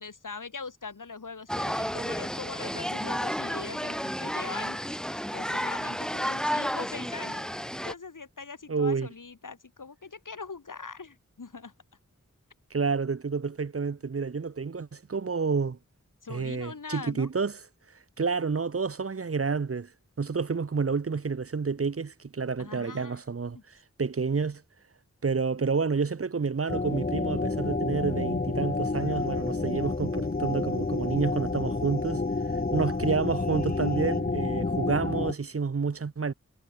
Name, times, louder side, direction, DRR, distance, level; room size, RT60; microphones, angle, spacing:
voice 1, 0.0-4.8 5.3-7.5 7.8-11.7 16.2-17.3 22.6-23.2 23.5-23.6, left 4 dB, 80° left, 2.1 m, -41 dB
sound 1, 1.5-7.9, equal, ahead, 2.9 m, -32 dB
voice 2, 8.7-9.1 12.7-15.8 16.3-17.6 18.2-19.9 20.2-23.6 24.0-24.6 25.2-32.2 32.7-36.3, right 5 dB, 45° right, 0.7 m, -29 dB
sound 2, 26.7-35.3, left 3 dB, 30° left, 0.9 m, -29 dB
sound 3, 28.9-34.2, left 3 dB, 60° left, 4.6 m, -54 dB
wide cardioid pair, 40°, 31 cm